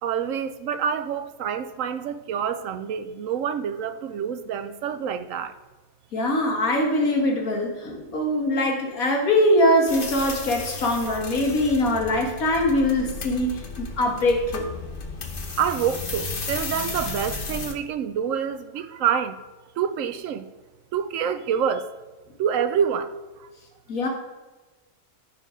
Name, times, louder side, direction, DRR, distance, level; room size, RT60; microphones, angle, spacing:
voice 1, 0.0-5.6 15.6-19.4 19.8-20.4 20.9-21.9 22.4-23.1 23.4-23.5, right 8 dB, 70° right, 1.0 m, -27 dB
voice 2, 6.1-14.7 23.9-24.1, left 1 dB, 85° left, 2.1 m, -22 dB
sound 1, 9.9-17.7, left 4 dB, 45° left, 1.1 m, -34 dB
13.5 x 4.5 x 5.0 m
omnidirectional pair, 1.5 m